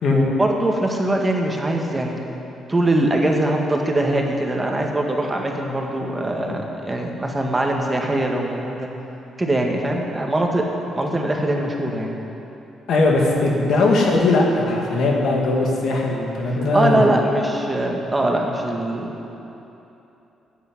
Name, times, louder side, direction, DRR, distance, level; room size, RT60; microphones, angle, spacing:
voice 1, 0.1-2.2 2.7-8.9 9.4-10.7 11.0-12.2 16.7-19.1, right 1 dB, 15° right, 0 dB, 1.8 m, -22 dB
voice 2, 12.9-17.1, left 2 dB, 70° left, -1 dB, 2.4 m, -19 dB
10.5 x 8.7 x 9.6 m, 3.0 s
cardioid pair, 90°, 0 cm